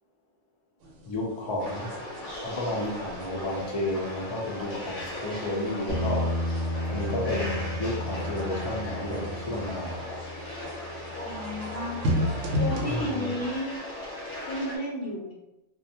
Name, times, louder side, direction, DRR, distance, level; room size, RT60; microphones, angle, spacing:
sound 1, 0.8-12.9, left 1 dB, 90° right, 0.9 m, -36 dB
voice 1, 1.1-1.9 2.4-6.3 6.9-10.0 12.9-13.3, left 1 dB, 40° left, -3 dB, 0.4 m, -32 dB
sound 2, 1.6-14.8, left 1 dB, 80° left, 1.0 m, -37 dB
Bass guitar, 5.9-12.1, equal, 60° right, 0.5 m, -34 dB
voice 2, 11.2-12.0 12.6-13.7 14.4-15.3, left 1 dB, 55° left, -4 dB, 1.0 m, -33 dB
2.5 x 2.1 x 2.7 m, 0.96 s
omnidirectional pair, 1.2 m